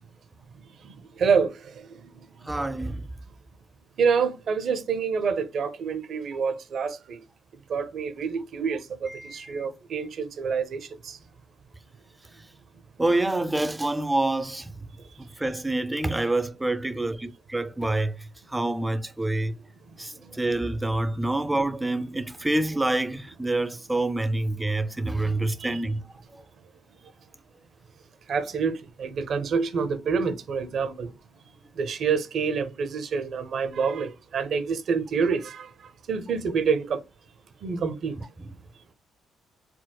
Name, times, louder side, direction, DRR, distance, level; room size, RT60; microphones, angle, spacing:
voice 1, 0.8-2.0 2.5-2.6 4.0-7.2 7.7-11.2 19.9-20.0 25.6-25.8 28.3-31.1 31.8-35.7 36.1-37.0 37.6-38.1, right 5 dB, 60° right, 0.6 m, -27 dB
voice 2, 2.5-3.0 9.1-9.7 13.0-14.7 15.4-18.2 18.5-19.5 20.0-26.0 38.4-38.5, right 2 dB, 10° right, 0.4 m, -27 dB
4.4 x 2.0 x 2.2 m
cardioid pair, 90°, 0 cm